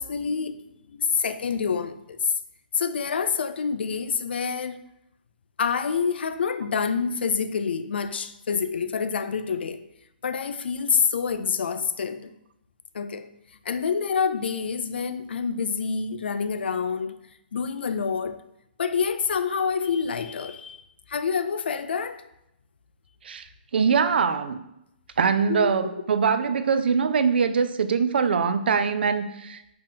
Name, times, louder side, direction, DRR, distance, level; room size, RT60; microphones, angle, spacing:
voice 1, 0.0-2.3 2.7-4.8 5.6-9.8 10.2-12.3 12.9-13.3 13.7-17.1 17.5-18.4 18.8-20.8 21.1-22.2 25.5-26.0, left 6 dB, 85° left, 0.4 m, -27 dB
voice 2, 23.7-24.6 25.2-29.7, right 6 dB, 70° right, 0.4 m, -23 dB
5.1 x 2.9 x 3.6 m
hypercardioid pair, 170°, 6 cm